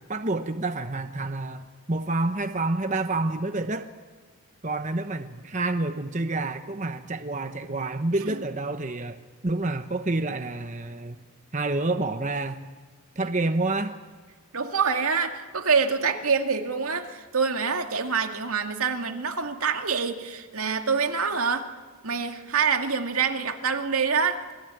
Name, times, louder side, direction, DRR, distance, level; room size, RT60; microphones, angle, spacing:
voice 1, 0.1-3.9 4.6-9.2 9.4-11.2 11.5-12.6 13.2-14.0, right 2 dB, 35° right, 7 dB, 1.0 m, -28 dB
voice 2, 14.5-21.7 22.0-24.6, right 5 dB, 85° right, 5 dB, 2.2 m, -26 dB
27.0 x 21.0 x 9.2 m, 1.5 s
head